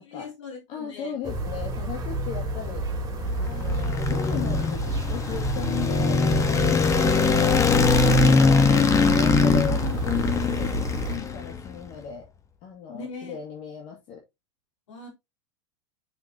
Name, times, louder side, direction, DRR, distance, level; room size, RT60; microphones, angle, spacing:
voice 1, 0.0-1.1 7.0-7.3 12.9-13.4 14.9-15.1, left 5 dB, 85° left, 3.8 m, -39 dB
voice 2, 0.7-2.9 3.3-8.2 8.6-12.3 12.6-14.2, left 7 dB, 50° left, 2.1 m, -36 dB
sound 1, 1.2-11.2, right 2 dB, 20° right, 2.7 m, -29 dB
sound 2, 3.3-11.7, left 4 dB, 20° left, 1.1 m, -22 dB
6.8 x 5.9 x 2.8 m
hypercardioid pair, 120°, 15 cm